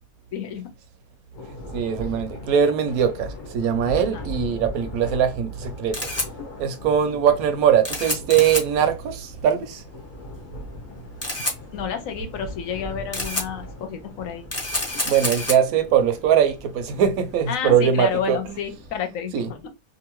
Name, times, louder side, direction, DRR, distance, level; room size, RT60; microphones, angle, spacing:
voice 1, 0.3-0.7 3.9-4.2 11.7-14.4 17.5-19.7, left 7 dB, 70° left, 0.9 m, -30 dB
Thunder, 1.3-17.6, left 1 dB, 55° left, 0.5 m, -39 dB
voice 2, 1.7-6.0 6.6-9.8 15.1-18.4 19.3-19.5, right 8 dB, 75° right, 1.0 m, -21 dB
Camera, 5.5-18.9, left 1 dB, 15° left, 0.6 m, -32 dB
2.6 x 2.5 x 3.0 m
omnidirectional pair, 1.6 m